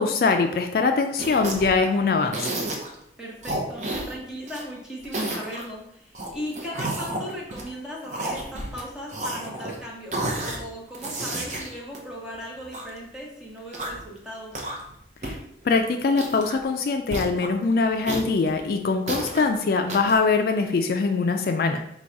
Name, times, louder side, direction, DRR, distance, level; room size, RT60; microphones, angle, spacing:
voice 1, 0.0-2.6 15.2-15.4 15.6-21.8, left 4 dB, 55° left, 5 dB, 0.3 m, -23 dB
sound 1, 1.2-1.8 2.3-2.9 3.4-4.6 5.0-5.7 6.1-7.7 8.1-8.8 9.1-9.8 10.1-10.6 10.9-12.9 13.6-14.1 14.5-15.0 15.2-15.4 15.6-15.8 16.1-16.6 17.1-17.5 18.1-19.4 19.9-20.2, right 1 dB, 40° right, 0.7 m, -31 dB
voice 2, 3.2-14.6, equal, 5° right, -4 dB, 0.8 m, -38 dB
4.0 x 2.3 x 4.5 m, 0.76 s
head